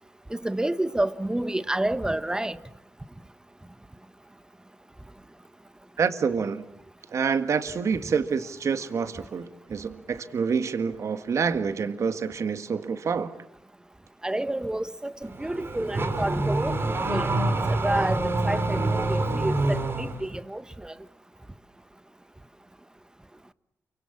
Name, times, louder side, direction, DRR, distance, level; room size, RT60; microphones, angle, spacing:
voice 1, 0.3-2.6 14.2-17.4 17.7-20.9, right 1 dB, 15° right, 1.3 m, -29 dB
voice 2, 6.0-6.6 7.1-13.3, right 6 dB, 60° right, 1.8 m, -27 dB
Car / Accelerating revving vroom, 15.2-20.2, right 2 dB, 45° right, 4.5 m, -26 dB
29.0 x 24.5 x 7.4 m
cardioid pair, 65°, 6 cm